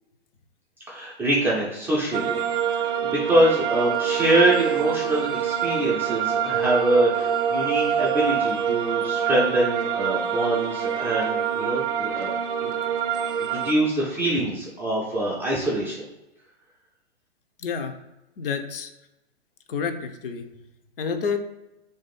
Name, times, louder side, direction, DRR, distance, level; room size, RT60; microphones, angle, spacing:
voice 1, 0.9-12.3 12.6-12.7 13.4-16.0, right 1 dB, 5° right, -6 dB, 0.3 m, -24 dB
sound 1, 2.1-13.7, right 8 dB, 55° right, 0.6 m, -25 dB
voice 2, 17.6-17.9 18.4-18.9 19.7-20.5 21.0-21.4, left 6 dB, 55° left, 6 dB, 0.6 m, -29 dB
3.0 x 2.6 x 4.0 m, 0.96 s
figure-of-eight pair, 115°, 33 cm